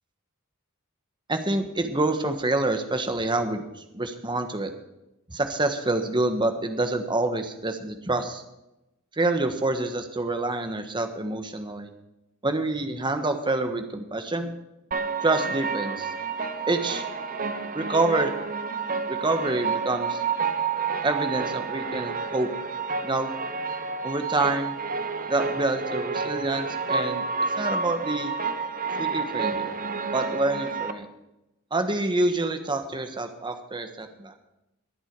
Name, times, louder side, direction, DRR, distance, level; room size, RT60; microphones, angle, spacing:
voice 1, 1.3-3.6 3.9-4.7 5.3-8.4 9.2-11.9 12.4-14.5 15.2-16.1 16.7-17.0 17.7-18.3 19.1-20.2 21.0-22.5 23.0-23.3 24.0-24.8 25.3-27.2 27.6-28.3 29.0-29.7 30.1-31.1 31.7-34.3, right 2 dB, 20° right, 6 dB, 1.3 m, -27 dB
sound 1, 14.9-30.9, right 5 dB, 40° right, 0.9 m, -30 dB
22.5 x 8.1 x 4.7 m, 0.91 s
head